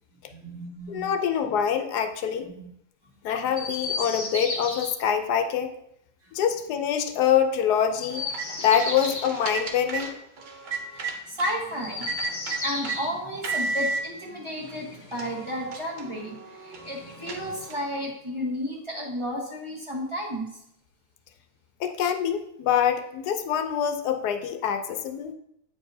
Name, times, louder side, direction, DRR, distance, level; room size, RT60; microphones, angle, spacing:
voice 1, 0.3-1.1 2.4-2.7 10.9-12.3 12.6-20.5, equal, 20° right, -4 dB, 1.1 m, -33 dB
voice 2, 0.9-2.5 3.2-5.7 6.3-8.3 8.6-10.1 21.8-25.3, left 8 dB, 90° left, 7 dB, 1.2 m, -25 dB
Chirp tweet, 3.5-4.9 7.9-9.3 11.7-13.1 14.5-15.6 16.7-17.6, left 2 dB, 30° left, 0.6 m, -34 dB
sound 1, 8.1-11.6 12.0-13.0 13.4-14.0 14.7-14.8 15.1-17.9, right 4 dB, 55° right, 0.5 m, -34 dB
8.7 x 4.7 x 2.7 m, 0.77 s
omnidirectional pair, 1.7 m